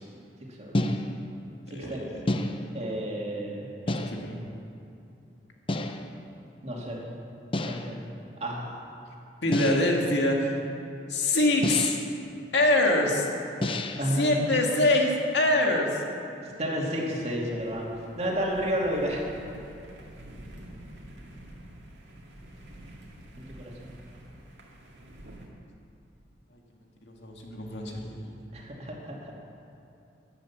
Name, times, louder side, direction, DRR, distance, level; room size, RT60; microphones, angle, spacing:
voice 1, 0.5-0.9 1.7-2.0 2.7-3.7 6.6-7.0 7.6-8.0 8.4-8.8 14.0-14.6 16.6-17.9 18.2-19.3 23.4-24.0 28.5-29.3, equal, 40° right, -2 dB, 2.5 m, -31 dB
sound 1, 0.7-1.4 2.3-2.9 3.9-4.5 5.7-6.2 7.5-8.0 9.5-10.1 11.6-12.2 13.6-14.2, left 1 dB, 30° left, 0.7 m, -30 dB
voice 2, 1.7-2.2 3.9-4.4 9.4-10.5 11.1-12.0 12.5-13.3 14.1-16.0 27.1-28.5, left 1 dB, 80° left, 1 dB, 2.0 m, -25 dB
sound 2, 17.6-25.5, right 1 dB, 85° right, 2.1 m, -47 dB
11.5 x 10.5 x 7.2 m, 2.8 s
head